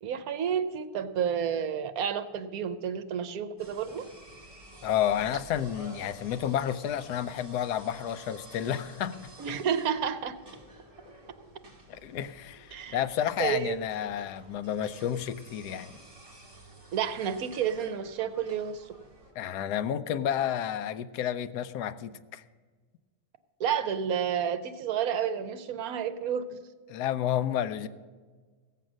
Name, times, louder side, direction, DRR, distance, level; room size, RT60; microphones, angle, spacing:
voice 1, 0.0-4.0 9.4-10.4 12.7-13.0 13.4-13.8 16.9-18.9 23.6-26.6, right 8 dB, 70° right, 11 dB, 1.1 m, -30 dB
sound 1, 3.6-19.3, right 1 dB, 35° right, 2.5 m, -51 dB
voice 2, 4.8-9.2 11.9-16.0 19.4-22.4 26.9-27.9, left 10 dB, 85° left, 13 dB, 1.1 m, -31 dB
16.5 x 7.5 x 6.2 m, 1.5 s
omnidirectional pair, 1.7 m